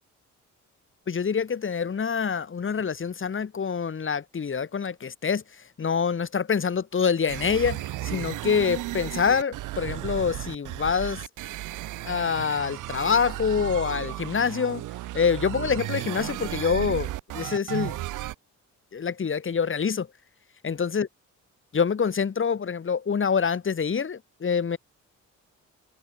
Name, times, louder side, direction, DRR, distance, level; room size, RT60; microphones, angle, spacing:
voice 1, 1.1-5.4 5.8-11.2 12.1-14.8 15.1-18.0 18.9-20.1 20.6-21.1 21.7-24.8, left 6 dB, 40° left, 6.8 m, -26 dB
sound 1, 7.3-18.3, right 16 dB, 90° right, 3.4 m, -34 dB
cardioid pair, 90°, 30 cm